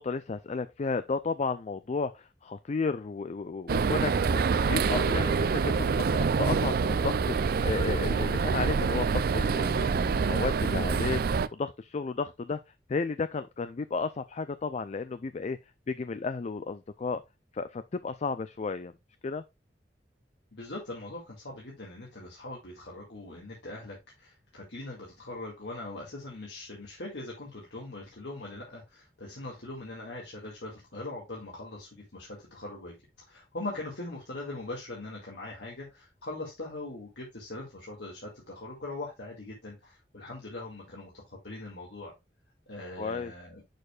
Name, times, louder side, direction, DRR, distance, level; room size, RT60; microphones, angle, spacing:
voice 1, 0.0-12.6 12.9-15.6 15.9-17.2 17.5-18.9 19.2-19.4 43.0-43.3, left 4 dB, 40° left, 0.4 m, -33 dB
sound 1, 3.7-11.5, right 5 dB, 60° right, 0.4 m, -26 dB
voice 2, 20.5-32.9 33.3-42.1 42.7-43.6, left 2 dB, 85° left, 2.1 m, -41 dB
6.7 x 6.5 x 2.4 m
head